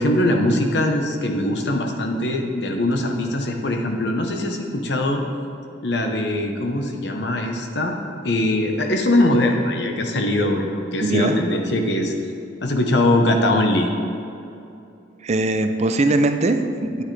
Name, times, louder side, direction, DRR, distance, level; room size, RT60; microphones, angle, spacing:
voice 1, 0.0-5.2 5.8-8.0 8.2-12.1 12.6-13.9, left 1 dB, 65° left, 3 dB, 1.0 m, -21 dB
voice 2, 11.0-11.4 15.2-17.0, right 2 dB, 40° right, 8 dB, 0.5 m, -20 dB
9.5 x 9.4 x 3.3 m, 2.7 s
head